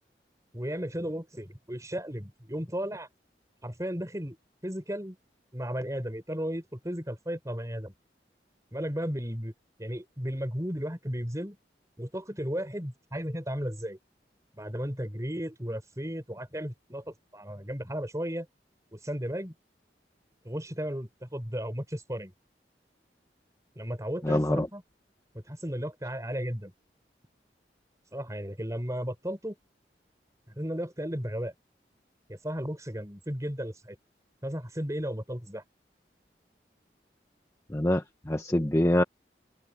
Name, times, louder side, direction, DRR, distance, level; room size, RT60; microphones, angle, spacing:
voice 1, 0.5-3.1 3.6-4.4 4.6-5.2 5.5-7.9 8.7-9.5 9.8-11.6 12.0-14.0 14.5-18.5 18.9-19.5 20.4-22.3 23.8-24.8 25.3-26.7 28.1-29.6 30.5-31.5 32.3-34.0 34.4-35.6, equal, 20° right, 6.4 m, -34 dB
voice 2, 24.2-24.7 37.7-39.0, left 1 dB, 15° left, 1.0 m, -25 dB
open air
head